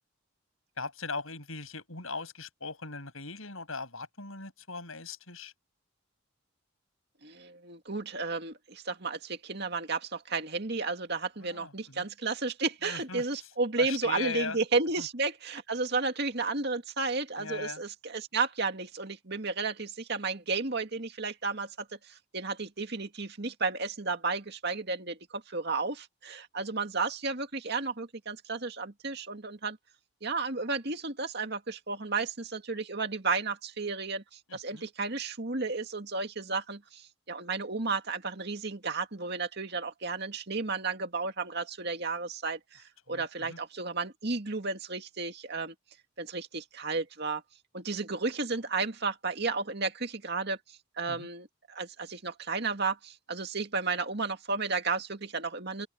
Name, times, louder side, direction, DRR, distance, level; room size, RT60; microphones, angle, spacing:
voice 1, 0.8-5.5 11.4-12.0 12.8-13.2 13.8-14.6 15.0-15.1 17.4-17.8 34.5-34.9 43.1-43.6 51.1-51.3, left 4 dB, 75° left, 8.0 m, -39 dB
voice 2, 7.2-29.8 30.2-45.7 46.2-47.4 47.7-50.6 51.0-55.9, right 4 dB, 50° right, 2.2 m, -33 dB
open air
head